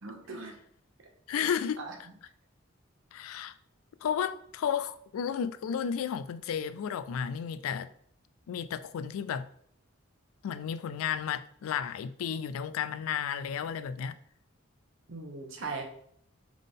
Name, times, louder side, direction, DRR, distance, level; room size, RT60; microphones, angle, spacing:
voice 1, 0.0-0.6 1.4-1.5 1.8-1.9 15.1-15.8, right 3 dB, 60° right, 0.9 m, -39 dB
voice 2, 1.3-1.8 3.1-3.5 4.0-7.9 8.5-9.5 10.4-14.2, left 8 dB, 80° left, 0.3 m, -33 dB
3.8 x 3.6 x 3.6 m
head